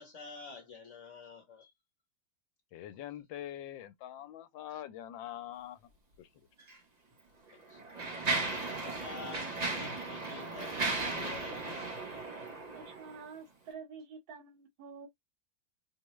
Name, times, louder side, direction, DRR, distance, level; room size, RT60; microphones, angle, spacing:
voice 1, 0.0-1.7 7.5-7.8 8.8-11.9, left 4 dB, 45° left, 1.1 m, -49 dB
voice 2, 2.7-5.8 6.2-6.3, left 12 dB, 80° left, 1.3 m, -44 dB
Mechanisms, 6.6-6.8 7.5-13.2, right 3 dB, 45° right, 0.5 m, -36 dB
voice 3, 12.7-15.1, right 5 dB, 75° right, 1.9 m, -48 dB
4.8 x 2.2 x 3.1 m
omnidirectional pair, 2.1 m